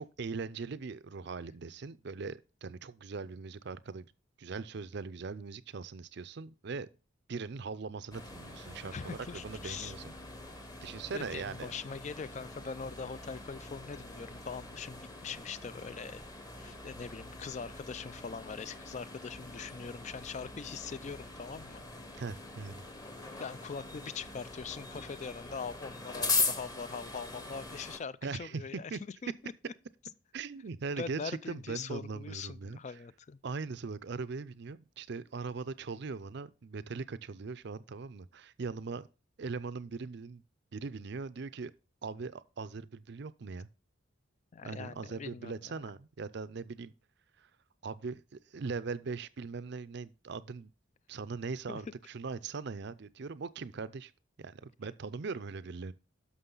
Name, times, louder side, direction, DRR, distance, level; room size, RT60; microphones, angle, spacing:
voice 1, 0.0-4.1 4.4-6.9 7.3-10.1 10.8-11.7 22.1-22.8 28.2-29.0 30.3-32.8 33.4-39.1 39.4-40.4 40.7-41.7 42.0-43.7 44.6-46.9 47.4-47.5 47.8-50.7 51.1-54.1 54.4-55.9, right 4 dB, 55° right, 0.5 m, -40 dB
sound 1, 8.1-28.0, left 3 dB, 20° left, 1.1 m, -41 dB
voice 2, 8.9-9.9 11.1-16.2 16.5-21.8 23.4-29.7 31.0-33.4 44.5-45.8 51.7-51.8, left 5 dB, 35° left, 0.4 m, -42 dB
11.5 x 6.4 x 3.9 m
head